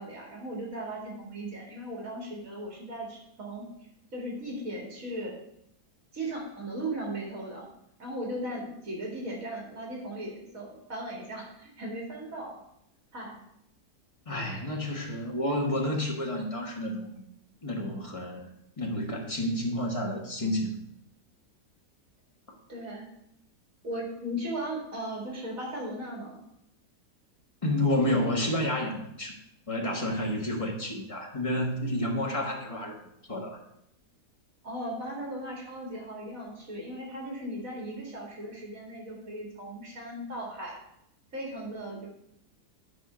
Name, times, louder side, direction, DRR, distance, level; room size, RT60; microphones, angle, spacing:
voice 1, 0.0-3.7 4.1-5.3 6.1-7.7 8.0-12.6 13.1-13.4 22.7-23.1 23.8-26.4 32.2-32.5 34.6-40.8 41.3-42.1, right 1 dB, 60° right, -1 dB, 2.5 m, -37 dB
voice 2, 14.2-17.1 17.6-18.5 18.8-20.7 27.6-29.4 29.7-32.9 33.3-33.6, left 1 dB, 20° left, 0 dB, 1.4 m, -30 dB
11.0 x 5.0 x 5.1 m, 0.78 s
omnidirectional pair, 1.7 m